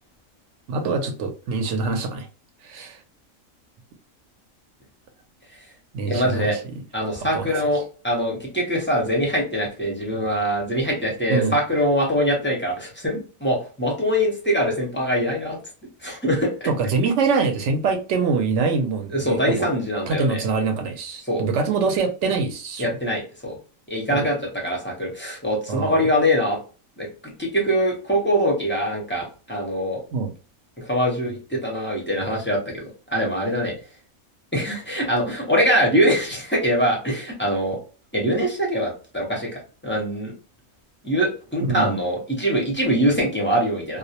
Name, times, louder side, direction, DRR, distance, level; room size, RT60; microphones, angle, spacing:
voice 1, 0.7-2.3 2.6-3.0 5.9-6.8 7.3-7.6 11.3-11.6 16.7-19.7 20.1-22.9 24.1-24.3 25.7-26.1 30.1-30.3 41.7-42.0, right 4 dB, 70° right, 0.8 m, -24 dB
voice 2, 6.0-6.6 6.9-15.6 16.0-16.7 19.1-20.5 21.3-21.5 22.8-23.6 23.9-26.6 27.0-30.0 30.8-32.8 33.1-33.7 34.5-37.8 38.1-40.3 41.0-44.0, equal, 15° left, 0.4 m, -23 dB
2.3 x 2.0 x 2.7 m
omnidirectional pair, 1.4 m